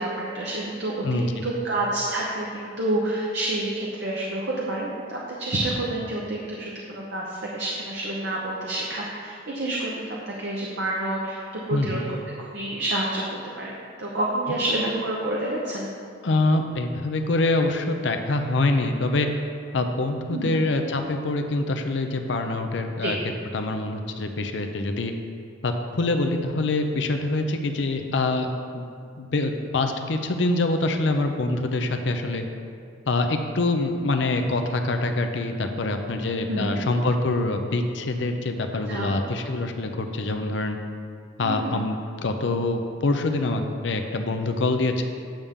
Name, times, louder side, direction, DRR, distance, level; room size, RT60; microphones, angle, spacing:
voice 1, 0.0-11.4 11.7-12.0 12.4-13.7 14.0-15.9 20.3-20.6 23.0-23.1 36.5-36.8 38.9-39.1 41.4-41.9, right 1 dB, 65° right, -3 dB, 0.9 m, -28 dB
voice 2, 1.0-1.4 11.7-12.0 16.2-19.3 19.7-23.2 23.5-25.1 25.6-28.5 28.7-28.8 29.2-32.4 33.1-40.8 41.4-45.0, left 2 dB, 70° left, 5 dB, 0.6 m, -25 dB
8.9 x 6.8 x 3.6 m, 2.3 s
head